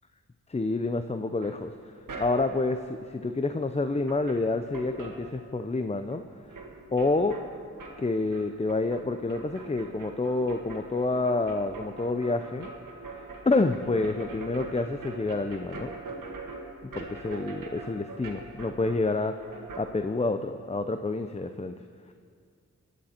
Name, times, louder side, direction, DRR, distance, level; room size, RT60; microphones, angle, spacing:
voice 1, 0.5-6.2 6.9-7.4 8.0-12.7 13.2-15.9 16.8-19.4 19.8-21.7, left 3 dB, 20° left, 8 dB, 0.6 m, -28 dB
sound 1, 1.4-2.7 3.7-3.8 4.0-5.8 6.1-19.9, right 3 dB, 85° right, 1.7 m, -43 dB
19.0 x 11.5 x 4.4 m, 2.2 s
cardioid pair, 45°, 31 cm